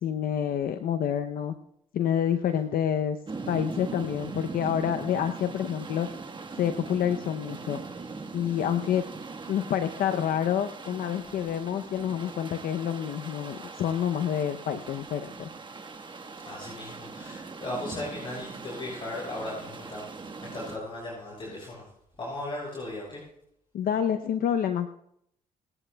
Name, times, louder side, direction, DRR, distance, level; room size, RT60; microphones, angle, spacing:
voice 1, 0.0-1.5 1.9-3.2 3.5-6.1 6.6-7.8 8.3-9.0 9.5-15.5 23.7-25.0, left 9 dB, 65° left, 7 dB, 0.7 m, -28 dB
sound 1, 3.3-20.8, right 4 dB, 30° right, 1.4 m, -41 dB
voice 2, 16.4-21.8 22.2-23.2, left 1 dB, 30° left, -7 dB, 6.5 m, -37 dB
28.5 x 10.0 x 2.3 m, 0.73 s
cardioid pair, 85°, 16 cm